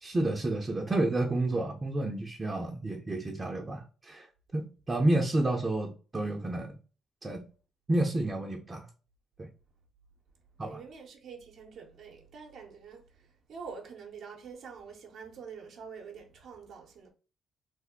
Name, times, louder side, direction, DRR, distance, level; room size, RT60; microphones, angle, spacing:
voice 1, 0.0-4.3 4.5-6.8 7.2-7.4 7.9-8.9 9.4-9.5 10.6-10.8, right 2 dB, 25° right, 0.6 m, -30 dB
voice 2, 10.6-17.1, right 5 dB, 70° right, 0.7 m, -46 dB
3.3 x 2.1 x 3.6 m
cardioid pair, 90°, 0 cm